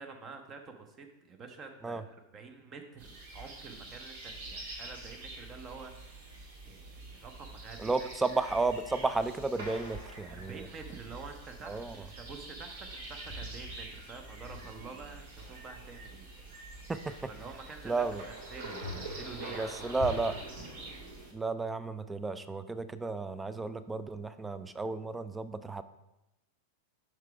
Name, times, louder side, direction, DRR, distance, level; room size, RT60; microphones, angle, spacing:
voice 1, 0.0-2.1 2.3-8.1 10.3-16.5 17.3-19.9, right 4 dB, 25° right, 5 dB, 0.7 m, -48 dB
sound 1, 3.0-21.3, right 1 dB, 60° right, 1.9 m, -45 dB
voice 2, 7.8-10.7 11.6-12.1 16.9-17.3 17.8-18.2 19.6-20.4 21.3-25.8, right 3 dB, 10° right, 13 dB, 0.4 m, -33 dB
5.8 x 4.6 x 4.8 m, 0.91 s
figure-of-eight pair, 90°, 0 cm